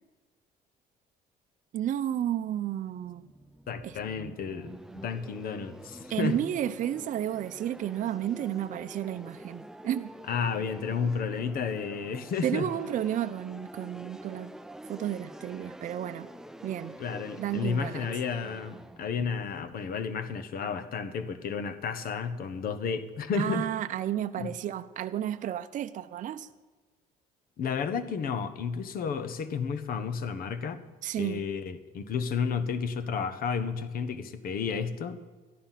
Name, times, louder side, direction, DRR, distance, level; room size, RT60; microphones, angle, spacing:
voice 1, 1.7-3.2 3.8-4.0 6.1-10.1 12.4-14.5 14.9-16.3 16.6-17.0 17.4-18.1 23.4-26.5 31.0-31.4, right 11 dB, 50° right, 9 dB, 0.6 m, -32 dB
sound 1, 2.8-20.6, right 1 dB, 5° right, 0.5 m, -47 dB
voice 2, 3.7-6.4 10.3-12.7 17.0-23.7 24.4-24.6 27.6-30.8 31.2-35.2, left 6 dB, 60° left, 12 dB, 1.1 m, -32 dB
13.5 x 11.0 x 5.8 m, 1.3 s
cardioid pair, 110°, 17 cm